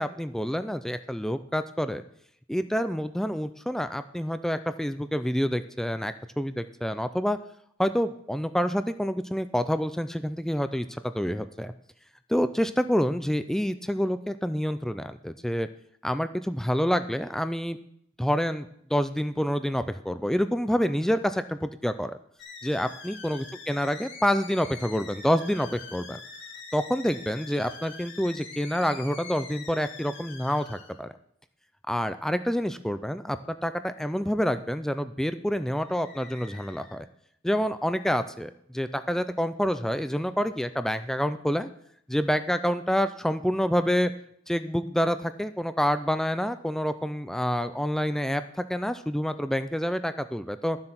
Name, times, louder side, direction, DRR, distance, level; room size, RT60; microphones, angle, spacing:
voice 1, 0.0-2.0 2.5-7.4 7.8-11.7 12.3-15.7 16.0-17.8 18.2-22.2 22.6-26.2 26.7-31.1 31.9-37.1 37.4-41.7 42.1-44.1 44.5-50.8, equal, ahead, 10 dB, 0.3 m, -27 dB
sound 1, 22.4-31.0 35.7-37.0, left 4 dB, 60° left, 2.4 m, -44 dB
12.0 x 7.7 x 5.8 m, 0.69 s
head